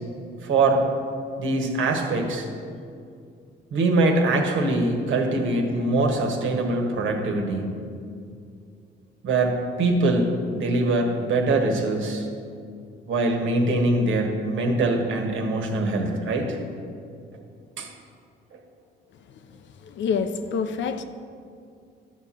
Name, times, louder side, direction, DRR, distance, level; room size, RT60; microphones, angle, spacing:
voice 1, 0.4-0.8 1.4-2.5 3.7-7.6 9.2-12.3 13.1-16.6 17.8-17.9 18.5-18.6, right 2 dB, 75° right, 3 dB, 1.5 m, -23 dB
voice 2, 19.8-21.0, left 6 dB, 70° left, 9 dB, 0.7 m, -26 dB
11.5 x 4.3 x 7.6 m, 2.4 s
cardioid pair, 90°, 20 cm